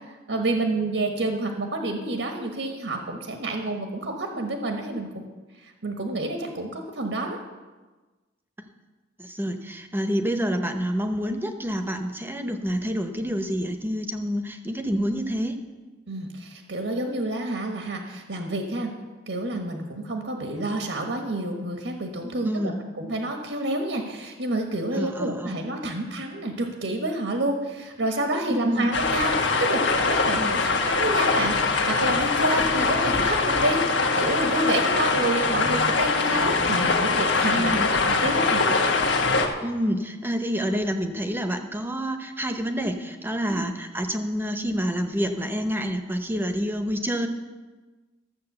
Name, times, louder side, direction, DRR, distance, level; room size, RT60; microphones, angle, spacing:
voice 1, 0.3-5.2 5.6-7.4 16.1-18.9 19.3-37.7 38.0-38.6 43.5-43.7, right 2 dB, 85° right, 3 dB, 1.4 m, -29 dB
voice 2, 9.2-15.6 22.5-22.8 24.9-25.6 28.5-28.9 30.3-30.6 37.5-37.9 39.6-47.3, equal, 10° right, 6 dB, 0.8 m, -28 dB
sound 1, 28.9-39.5, left 4 dB, 75° left, 1.3 m, -23 dB
13.0 x 7.5 x 6.8 m, 1.3 s
head